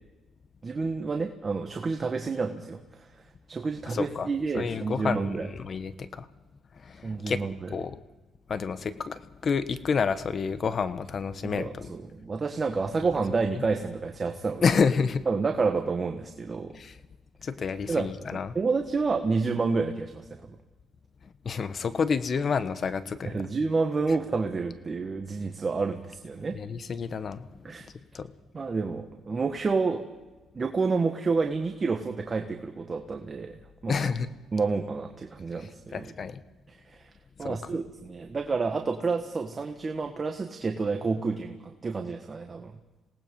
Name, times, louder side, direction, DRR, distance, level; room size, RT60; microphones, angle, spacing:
voice 1, 0.6-3.1 3.5-5.5 7.0-7.7 11.5-14.8 15.3-16.8 17.9-20.3 23.3-26.6 27.6-27.9 28.5-30.0 30.5-34.1 34.5-36.1 36.9-37.1 37.4-42.7, right 4 dB, 35° right, 5 dB, 1.5 m, -29 dB
voice 2, 3.9-6.3 6.7-7.4 7.7-8.0 8.5-11.9 13.5-13.6 14.6-15.2 16.7-17.0 17.4-18.6 21.2-23.4 24.1-24.2 26.5-28.3 33.9-34.3 35.6-36.4 37.4-37.6, left 5 dB, 45° left, 13 dB, 1.1 m, -29 dB
26.5 x 18.5 x 5.4 m, 1.2 s
cardioid pair, 90°, 0 cm